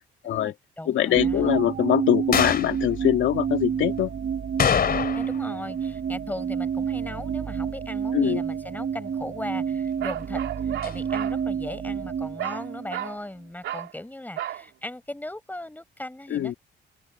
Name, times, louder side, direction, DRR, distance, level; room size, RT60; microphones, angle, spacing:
voice 1, 0.2-1.5 5.1-16.6, left 1 dB, 10° left, 6.1 m, -38 dB
voice 2, 0.9-4.1 8.1-8.4 16.3-16.5, left 11 dB, 80° left, 2.1 m, -23 dB
sound 1, 1.2-13.3, right 7 dB, 50° right, 5.7 m, -29 dB
sound 2, 2.3-2.8 4.6-5.5 5.7-5.8 10.8-11.0, left 7 dB, 50° left, 3.7 m, -24 dB
Bark, 10.0-11.4 12.4-12.6 12.9-13.2 13.6-13.9 14.4-14.6, right 12 dB, 75° right, 2.9 m, -32 dB
open air
cardioid pair, 90°, 20 cm